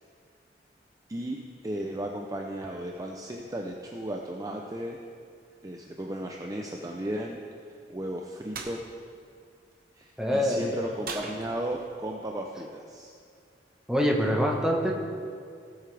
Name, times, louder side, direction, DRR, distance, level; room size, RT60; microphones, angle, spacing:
voice 1, 1.6-5.0 5.6-7.4 7.9-8.8 9.9-13.1, right 1 dB, 20° right, 1 dB, 0.6 m, -35 dB
sound 1, 8.5-8.8 11.0-12.0, right 4 dB, 55° right, 1.0 m, -39 dB
voice 2, 10.2-10.7 13.9-14.9, equal, 5° right, -1 dB, 1.1 m, -24 dB
17.5 x 8.0 x 3.4 m, 2.3 s
head